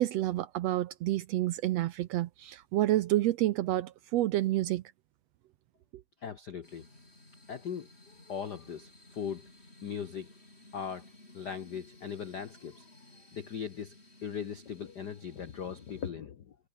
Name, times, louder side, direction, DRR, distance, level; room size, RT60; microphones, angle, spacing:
voice 1, 0.0-4.8, right 15 dB, 75° right, 1.6 m, -29 dB
voice 2, 6.2-6.9 7.5-9.5 9.8-10.3 10.7-11.1 11.3-13.9 14.2-16.6, left 7 dB, 70° left, 0.9 m, -39 dB
sound 1, 6.6-16.1, left 1 dB, 20° left, 6.3 m, -57 dB
omnidirectional pair, 3.5 m